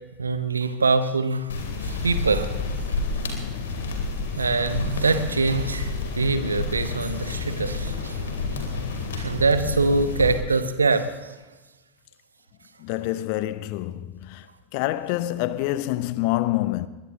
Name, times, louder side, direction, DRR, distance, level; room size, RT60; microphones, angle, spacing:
voice 1, 0.2-1.5 1.8-2.6 4.4-8.3 9.2-11.3, right 3 dB, 80° right, 1.0 m, -24 dB
sound 1, 1.5-10.3, left 4 dB, 65° left, 2.9 m, -29 dB
voice 2, 12.8-14.5 14.7-16.9, left 16 dB, 50° left, 0.7 m, -26 dB
22.0 x 21.0 x 2.8 m
figure-of-eight pair, 85°, 0 cm